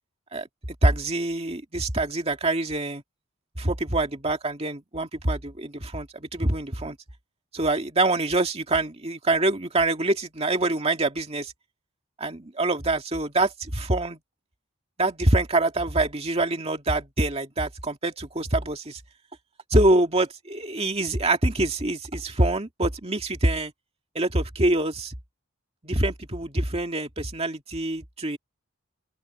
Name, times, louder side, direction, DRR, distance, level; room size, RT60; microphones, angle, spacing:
voice 1, 0.8-3.0 3.6-7.0 7.5-11.5 12.2-14.2 15.0-19.0 19.7-23.7 24.1-25.1 25.8-28.4, right 2 dB, 30° right, 2.3 m, -25 dB
open air
head